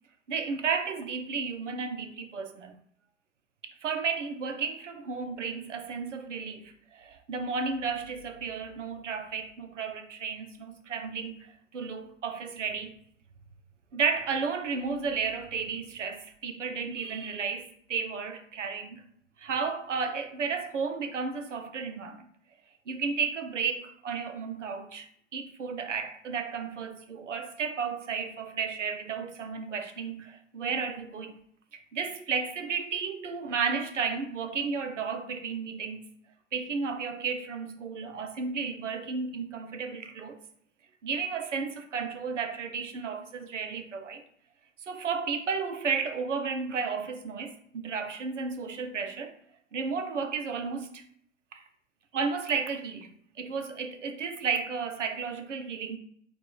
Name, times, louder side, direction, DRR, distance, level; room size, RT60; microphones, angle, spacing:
voice 1, 0.3-2.7 3.6-12.9 13.9-19.1 19.4-22.3 22.9-25.1 25.3-31.4 31.7-36.0 36.5-40.4 41.0-44.2 44.9-49.3 49.7-51.0 51.5-51.6 52.1-53.1 53.4-56.0, right 5 dB, 70° right, 0.8 m, -33 dB
4.6 x 2.6 x 3.9 m
figure-of-eight pair, 100°, 37 cm